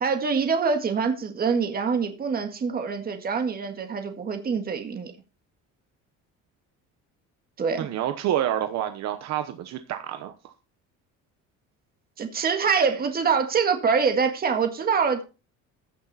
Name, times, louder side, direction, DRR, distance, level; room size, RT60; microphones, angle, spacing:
voice 1, 0.0-5.1 7.6-7.9 12.2-15.2, right 5 dB, 30° right, 1.8 m, -25 dB
voice 2, 7.8-10.5, right 11 dB, 60° right, 1.0 m, -28 dB
15.0 x 6.6 x 4.2 m
cardioid pair, 165°, 31 cm